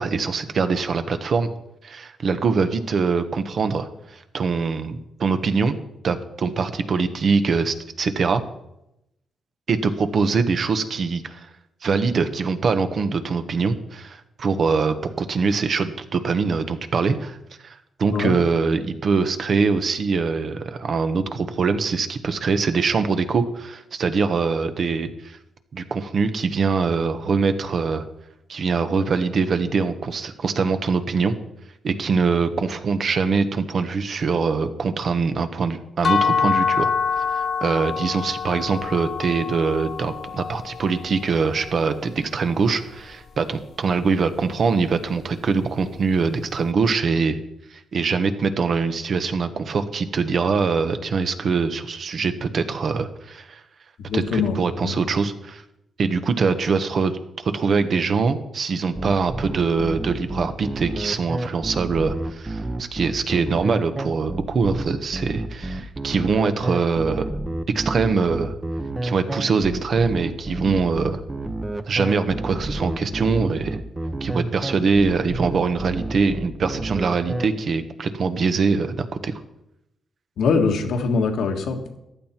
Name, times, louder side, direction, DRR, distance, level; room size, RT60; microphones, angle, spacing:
voice 1, 0.0-1.5 1.8-5.7 6.0-8.4 9.7-11.5 11.8-17.4 17.6-25.4 25.7-28.0 28.5-31.3 31.8-36.9 37.3-47.4 47.7-53.6 54.1-55.6 56.0-67.3 67.7-68.5 69.0-71.2 71.9-73.8 74.2-79.3, right 5 dB, 55° right, 10 dB, 1.1 m, -23 dB
sound 1, 36.0-41.9, left 6 dB, 50° left, 0.7 m, -26 dB
voice 2, 54.1-54.6 54.8-54.9 80.4-82.0, left 5 dB, 80° left, 4 dB, 1.7 m, -22 dB
sound 2, 58.9-77.5, right 2 dB, 15° right, 0.9 m, -29 dB
14.5 x 11.0 x 4.4 m, 0.85 s
cardioid pair, 115°, 0 cm